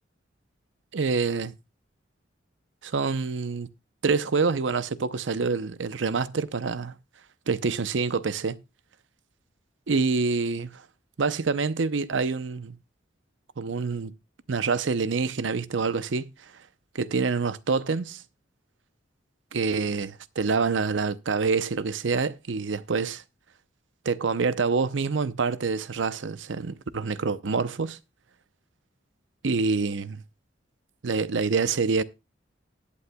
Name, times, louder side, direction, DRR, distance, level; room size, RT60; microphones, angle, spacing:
voice 1, 0.9-1.5 2.8-3.7 4.0-7.0 7.5-8.6 9.9-10.8 11.2-12.8 13.6-14.1 14.5-16.3 16.9-18.2 19.5-23.2 24.0-28.0 29.4-30.2 31.0-32.0, right 4 dB, 80° right, 0.7 m, -26 dB
19.5 x 8.4 x 2.3 m
head